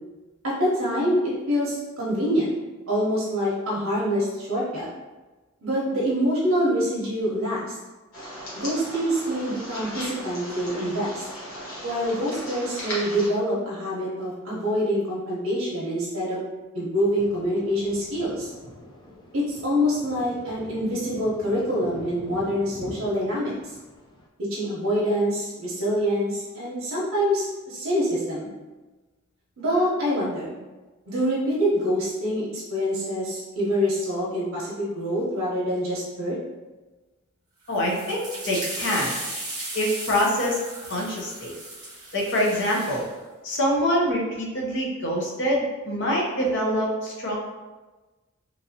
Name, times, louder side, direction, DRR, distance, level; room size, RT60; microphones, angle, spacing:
voice 1, 0.4-2.5 2.9-4.9 5.6-7.7 8.5-11.2 11.8-16.4 16.7-18.5 19.3-23.5 24.5-28.5 29.6-30.5 31.1-36.4, equal, 70° right, -6 dB, 0.7 m, -25 dB
sound 1, 8.1-13.3, equal, 85° left, 1.0 m, -36 dB
Thunder, 17.2-24.3, left 1 dB, 20° left, 0.3 m, -43 dB
voice 2, 37.7-39.2 39.7-40.6 40.9-41.5 42.1-43.1 43.4-47.4, equal, 55° left, -3 dB, 0.7 m, -25 dB
sound 2, 37.7-43.1, right 2 dB, 20° right, 0.7 m, -36 dB
3.0 x 2.6 x 2.6 m, 1.2 s
head